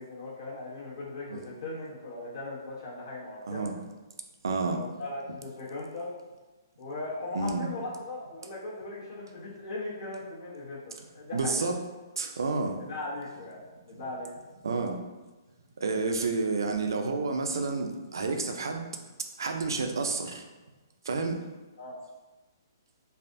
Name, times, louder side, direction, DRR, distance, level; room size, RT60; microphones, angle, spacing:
voice 1, 0.0-3.7 4.6-6.1 6.8-11.7 12.5-14.3 21.8-22.0, left 2 dB, 80° left, -7 dB, 1.2 m, -39 dB
voice 2, 4.4-4.8 7.3-7.7 11.3-11.8 12.2-12.8 14.6-15.0 15.8-18.9 19.4-20.5 21.0-21.4, right 3 dB, 85° right, 4 dB, 0.4 m, -30 dB
3.3 x 2.4 x 2.6 m, 1.2 s
hypercardioid pair, 165°, 2 cm